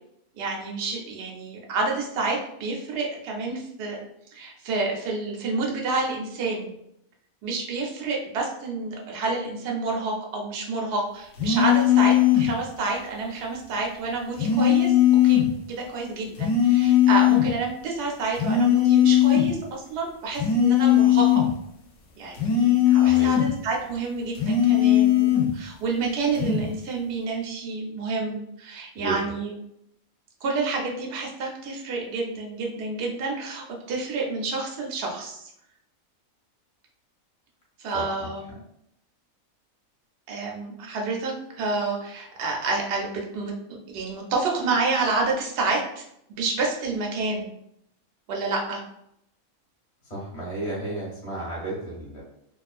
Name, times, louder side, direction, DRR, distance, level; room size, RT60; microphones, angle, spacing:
voice 1, 0.3-4.0 4.3-6.8 7.4-14.9 15.2-15.4 15.7-21.4 22.2-29.5 30.4-35.5 37.8-38.4 40.3-47.5 48.3-48.8, right 3 dB, 60° right, -1 dB, 0.7 m, -29 dB
sound 1, 11.4-12.5 14.4-15.5 16.4-17.5 18.4-19.5 20.3-21.5 22.4-23.5 24.3-25.5 26.3-26.7, left 11 dB, 70° left, 0.9 m, -19 dB
voice 2, 37.9-38.6 50.0-52.2, right 2 dB, 30° left, -6 dB, 0.8 m, -33 dB
2.3 x 2.3 x 2.4 m, 0.76 s
omnidirectional pair, 1.5 m